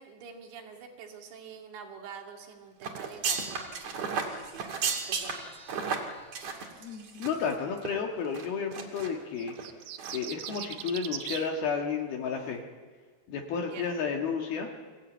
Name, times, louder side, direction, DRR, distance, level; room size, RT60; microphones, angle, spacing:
voice 1, 0.0-5.9 13.6-14.0, right 6 dB, 85° right, 3 dB, 4.5 m, -47 dB
sound 1, 2.8-7.5 7.8-7.9 8.3-9.1 9.5-9.7 10.0-10.2 10.5-10.6, right 5 dB, 50° right, 3.1 m, -34 dB
voice 2, 6.8-9.5 10.1-12.6 13.3-14.7, left 6 dB, 65° left, 2 dB, 3.5 m, -32 dB
sound 2, 9.4-11.5, right 11 dB, 70° right, 2.3 m, -39 dB
24.5 x 16.5 x 9.2 m, 1.5 s
omnidirectional pair, 4.9 m